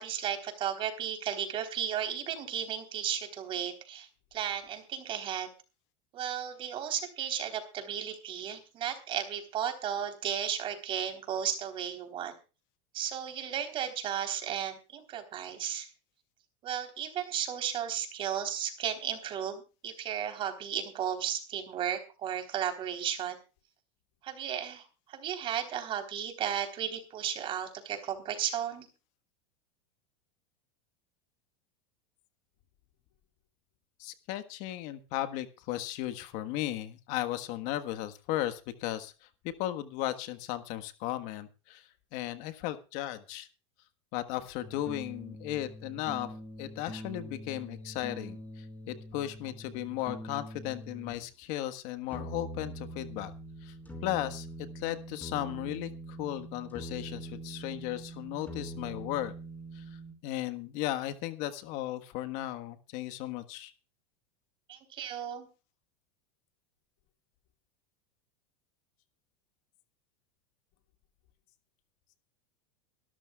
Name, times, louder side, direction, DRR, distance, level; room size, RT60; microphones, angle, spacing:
voice 1, 0.0-5.5 6.1-12.3 12.9-15.9 16.6-23.4 24.2-28.9 64.7-65.5, right 9 dB, 35° right, 7 dB, 3.6 m, -34 dB
voice 2, 34.0-39.1 39.4-41.8 42.1-43.5 44.1-46.3 46.6-53.3 53.6-53.7 54.0-54.5 54.7-55.9 56.2-59.3 59.7-59.8 60.2-63.7, left 14 dB, 50° left, 11 dB, 1.4 m, -35 dB
sound 1, 44.6-51.3 52.1-60.1, right 1 dB, 10° left, 4.9 m, -44 dB
24.5 x 13.0 x 2.4 m, 0.32 s
supercardioid pair, 145°, 16 cm